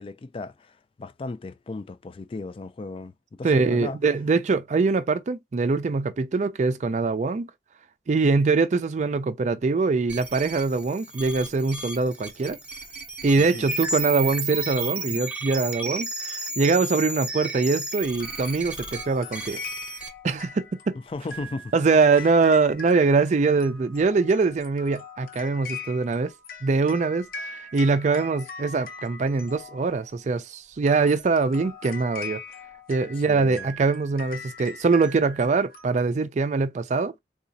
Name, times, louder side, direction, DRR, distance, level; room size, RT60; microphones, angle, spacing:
voice 1, 0.0-3.1 3.4-4.0 13.4-13.6 15.1-15.2 21.1-21.7 22.1-22.2 33.3-33.7, left 3 dB, 30° left, 0.3 m, -36 dB
voice 2, 3.4-7.5 8.1-12.6 13.2-19.6 20.2-21.0 21.7-26.3 26.6-32.4 32.9-37.1, right 4 dB, 40° right, 0.4 m, -23 dB
sound 1, 10.1-20.1, right 2 dB, 5° right, 0.7 m, -33 dB
sound 2, 18.2-30.1 30.7-36.0, left 4 dB, 55° left, 0.7 m, -41 dB
4.0 x 2.4 x 2.6 m
head